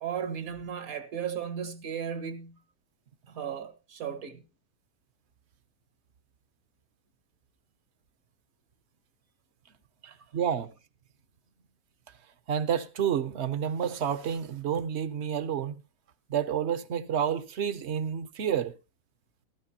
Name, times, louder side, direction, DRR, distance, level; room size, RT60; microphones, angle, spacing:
voice 1, 0.0-2.6 3.3-4.4 10.0-10.2, right 8 dB, 70° right, 1.6 m, -35 dB
voice 2, 10.3-10.7 12.5-15.7 16.3-18.7, right 8 dB, 55° right, 0.9 m, -29 dB
14.5 x 13.0 x 2.8 m
omnidirectional pair, 1.6 m